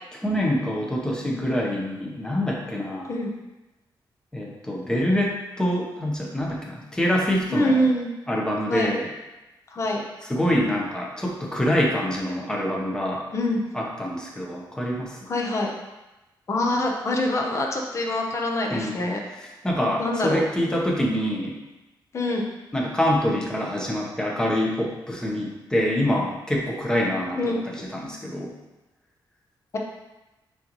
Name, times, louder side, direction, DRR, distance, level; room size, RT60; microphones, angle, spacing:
voice 1, 0.2-3.1 4.3-7.9 8.3-9.1 10.2-13.2 13.7-15.2 18.7-19.0 19.4-21.6 22.7-28.5, equal, 10° left, -2 dB, 1.1 m, -25 dB
voice 2, 7.5-8.1 8.7-8.9 9.7-10.0 13.3-13.6 15.3-15.7 16.5-19.2 20.0-20.4 22.1-22.5 27.4-27.6, left 1 dB, 35° left, 0 dB, 0.9 m, -25 dB
9.2 x 4.0 x 3.1 m, 1.0 s
wide cardioid pair, 170°, 8 cm